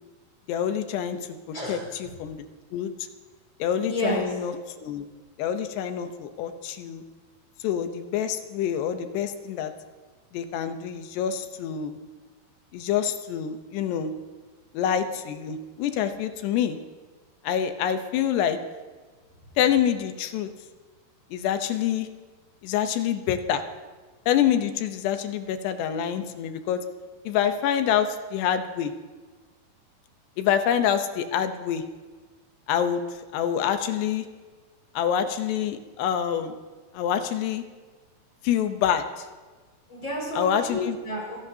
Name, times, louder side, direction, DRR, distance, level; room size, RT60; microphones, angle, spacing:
voice 1, 0.5-1.2 1.7-2.4 2.7-2.9 3.6-4.5 4.8-5.1 5.4-7.0 7.6-9.7 10.3-12.0 12.7-14.1 14.7-16.8 17.4-18.6 19.6-20.5 21.3-22.1 22.6-23.6 24.3-26.8 27.3-28.9 30.4-31.8 32.7-33.0 33.3-34.3 35.0-36.6 36.9-37.6 38.4-39.3 40.4-41.0, left 9 dB, 85° left, 8 dB, 3.0 m, -26 dB
voice 2, 1.5-1.9 3.9-4.4 39.9-41.4, left 1 dB, 25° left, -2 dB, 5.9 m, -30 dB
27.5 x 17.0 x 2.8 m, 1.4 s
omnidirectional pair, 4.8 m